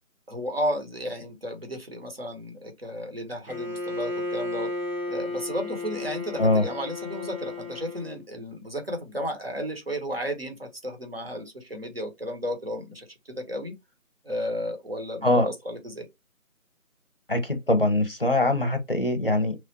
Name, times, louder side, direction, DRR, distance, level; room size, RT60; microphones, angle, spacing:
voice 1, 0.3-4.7 5.1-13.7 14.2-16.1, equal, 45° right, 1.0 m, -33 dB
Bowed string instrument, 3.5-8.2, left 2 dB, 75° right, 1.4 m, -33 dB
voice 2, 17.3-19.6, left 2 dB, 40° left, 0.7 m, -22 dB
3.1 x 2.4 x 2.9 m
figure-of-eight pair, 175°, 42 cm